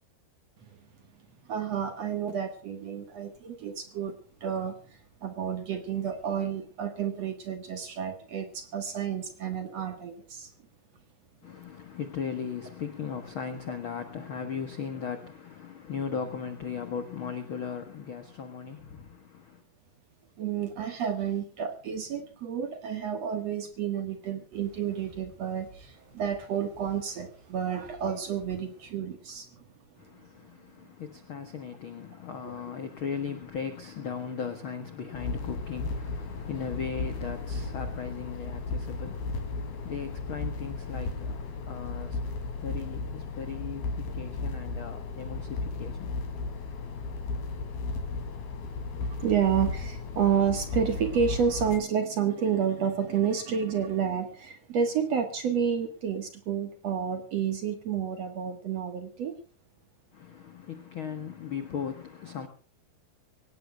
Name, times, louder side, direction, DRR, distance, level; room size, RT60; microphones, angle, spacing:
voice 1, 1.5-4.1 4.4-10.5 20.4-29.7 32.4-32.6 49.0-59.4, right 7 dB, 55° right, 2.1 m, -30 dB
voice 2, 11.4-19.6 30.0-46.2 60.1-62.5, left 6 dB, 85° left, 1.1 m, -37 dB
sound 1, 24.5-28.9, right 2 dB, 85° right, 7.3 m, -55 dB
sound 2, 35.1-51.8, left 3 dB, 65° left, 4.4 m, -35 dB
24.5 x 18.0 x 2.3 m
omnidirectional pair, 4.6 m